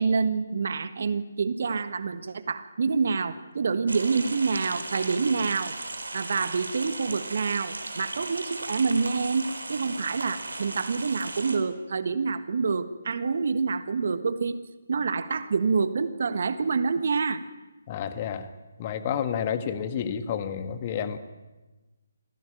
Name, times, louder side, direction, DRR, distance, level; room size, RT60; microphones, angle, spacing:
voice 1, 0.0-5.7 6.1-14.6 14.9-17.4, right 4 dB, 55° right, 12 dB, 1.4 m, -27 dB
sound 1, 3.9-11.6, right 2 dB, 75° right, 4.0 m, -36 dB
voice 2, 17.9-18.5 18.8-21.2, left 8 dB, 30° left, 10 dB, 1.8 m, -30 dB
26.0 x 16.0 x 9.1 m, 1.2 s
figure-of-eight pair, 145°, 0 cm